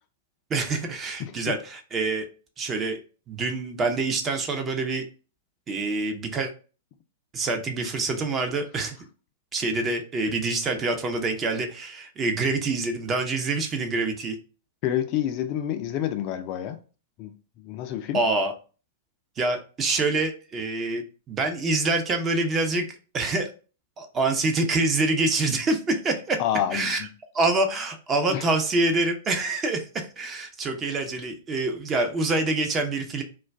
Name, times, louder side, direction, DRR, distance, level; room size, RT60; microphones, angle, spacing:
voice 1, 0.5-2.2 2.6-3.0 3.3-5.1 5.7-6.5 7.3-9.0 9.5-14.4 18.1-18.5 19.4-22.9 23.1-23.5 24.0-26.4 26.7-27.1 27.3-33.2, right 3 dB, 25° right, 0.5 m, -26 dB
voice 2, 14.8-16.8 17.2-18.2 26.4-27.1 28.3-28.4, left 11 dB, 45° left, 0.3 m, -28 dB
2.3 x 2.2 x 3.2 m
figure-of-eight pair, 105°, 0 cm